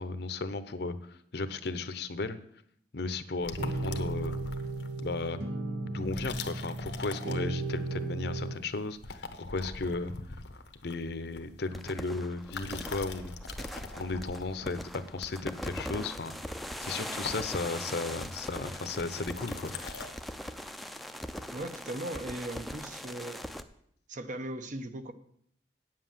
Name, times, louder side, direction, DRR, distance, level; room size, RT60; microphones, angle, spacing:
voice 1, 0.0-2.4 2.9-4.4 5.0-5.4 5.8-10.4 10.8-13.3 14.0-16.3 16.8-19.7, left 3 dB, 65° left, 0.8 m, -35 dB
sound 1, 3.4-5.2 6.0-7.9 8.2-8.6 8.9-11.9 12.4-20.1, left 4 dB, 90° left, 1.0 m, -43 dB
sound 2, 3.6-8.5, right 2 dB, 90° right, 1.8 m, -35 dB
sound 3, 11.7-23.6, equal, ahead, 0.5 m, -41 dB
voice 2, 21.5-23.5 24.1-25.1, right 1 dB, 45° right, 0.8 m, -38 dB
9.0 x 7.6 x 7.4 m
head